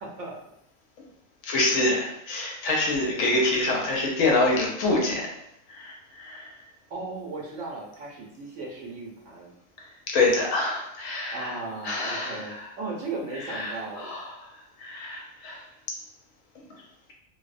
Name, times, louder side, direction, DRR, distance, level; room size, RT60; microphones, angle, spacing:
voice 1, 0.0-0.3 6.9-9.5 11.3-14.1, right 3 dB, 90° right, -1 dB, 1.1 m, -36 dB
voice 2, 1.4-5.3 5.7-6.5 10.1-11.6 11.8-12.6 13.5-14.3 14.8-15.6, left 2 dB, 85° left, -1 dB, 1.0 m, -26 dB
2.6 x 2.0 x 2.4 m, 0.76 s
omnidirectional pair, 1.4 m